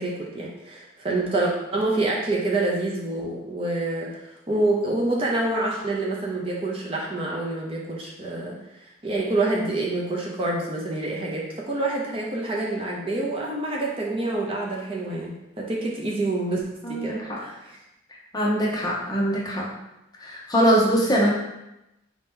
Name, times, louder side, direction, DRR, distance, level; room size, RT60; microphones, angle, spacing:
voice 1, 0.0-8.5 9.0-16.6 16.9-17.7, right 2 dB, 25° right, -3 dB, 0.5 m, -27 dB
voice 2, 16.8-17.4 18.3-19.7 20.2-21.3, equal, 20° left, -3 dB, 0.7 m, -22 dB
4.2 x 2.8 x 3.6 m, 0.91 s
head